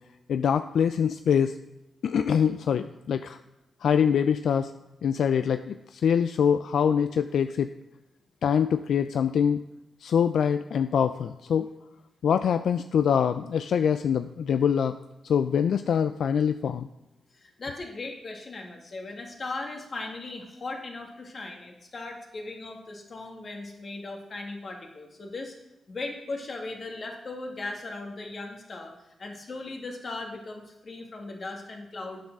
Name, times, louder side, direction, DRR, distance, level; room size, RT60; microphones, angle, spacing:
voice 1, 0.3-1.6 2.0-3.4 3.8-4.7 5.0-7.7 8.4-9.6 10.0-11.7 12.2-15.0 15.2-16.9, left 7 dB, 80° left, 10 dB, 0.3 m, -24 dB
voice 2, 17.4-25.5 25.9-28.9 29.2-32.2, left 2 dB, 50° left, 2 dB, 2.0 m, -38 dB
9.3 x 6.7 x 6.0 m, 0.91 s
cardioid pair, 90°, 0 cm